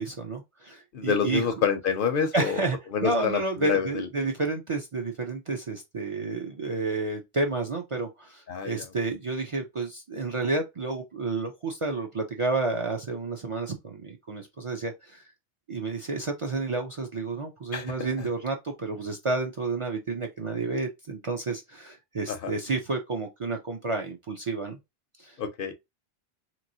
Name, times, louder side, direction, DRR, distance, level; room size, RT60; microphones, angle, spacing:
voice 1, 0.0-1.4 2.3-15.2 15.7-24.8 25.2-25.4, right 3 dB, 40° right, 0.5 m, -30 dB
voice 2, 0.9-2.6 2.9-4.1 8.5-8.9 17.7-18.3 22.3-22.5 25.4-25.7, left 6 dB, 60° left, 0.7 m, -28 dB
3.0 x 3.0 x 2.6 m
omnidirectional pair, 1.0 m